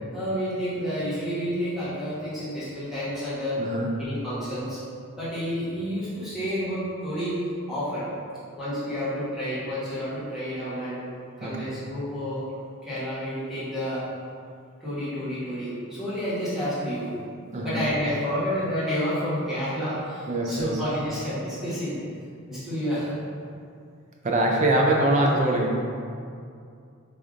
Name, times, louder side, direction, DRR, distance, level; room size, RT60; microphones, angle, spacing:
voice 1, 0.1-3.6 4.0-4.8 5.1-7.4 7.7-8.1 8.6-11.0 11.4-12.5 12.8-14.0 14.8-17.1 17.6-22.0 22.5-23.2, equal, ahead, -13 dB, 1.1 m, -30 dB
voice 2, 3.6-3.9 11.4-11.7 17.5-17.8 20.3-20.8 24.2-25.7, right 1 dB, 35° right, 0 dB, 0.3 m, -23 dB
4.9 x 2.5 x 2.4 m, 2.4 s
head